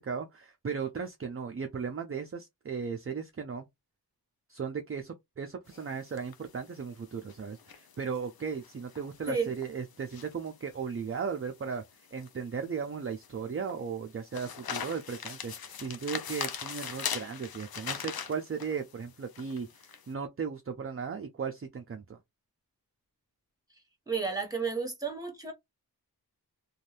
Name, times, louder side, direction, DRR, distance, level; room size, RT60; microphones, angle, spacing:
voice 1, 0.0-3.7 4.5-11.8 12.1-22.2, right 6 dB, 35° right, 0.5 m, -36 dB
sound 1, 5.7-20.1, left 7 dB, 70° left, 0.6 m, -41 dB
voice 2, 24.1-25.5, right 5 dB, 10° right, 1.4 m, -32 dB
2.6 x 2.3 x 3.2 m
wide cardioid pair, 70°, 38 cm